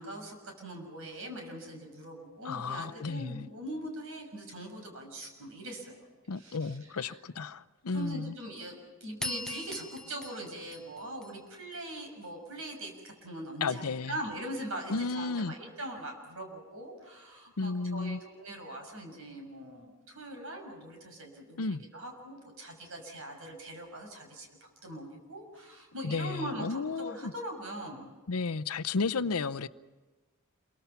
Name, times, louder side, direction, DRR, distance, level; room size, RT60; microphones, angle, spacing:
voice 1, 0.0-6.0 6.3-7.2 7.9-8.7 9.0-24.5 24.8-28.1, right 1 dB, 65° right, 6.7 m, -42 dB
voice 2, 2.4-3.5 6.3-8.3 13.6-14.2 14.9-15.5 17.6-18.2 21.6-21.8 26.0-27.3 28.3-29.7, left 4 dB, 85° left, 0.7 m, -33 dB
sound 1, 9.2-11.8, left 2 dB, 5° left, 0.8 m, -40 dB
28.5 x 23.5 x 5.8 m
head